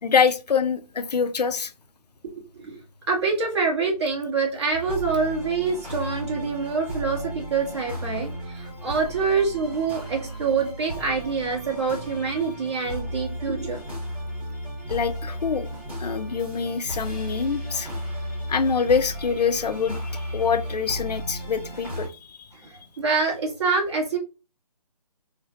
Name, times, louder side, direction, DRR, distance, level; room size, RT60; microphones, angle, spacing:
voice 1, 0.0-1.7 14.9-15.7 16.0-17.9 18.5-22.5, left 6 dB, 85° left, 0.4 m, -25 dB
voice 2, 3.1-13.8 22.5-24.2, right 4 dB, 45° right, 1.1 m, -26 dB
sound 1, 4.7-22.1, equal, 5° right, 0.9 m, -34 dB
3.1 x 2.1 x 2.6 m
figure-of-eight pair, 155°, 20 cm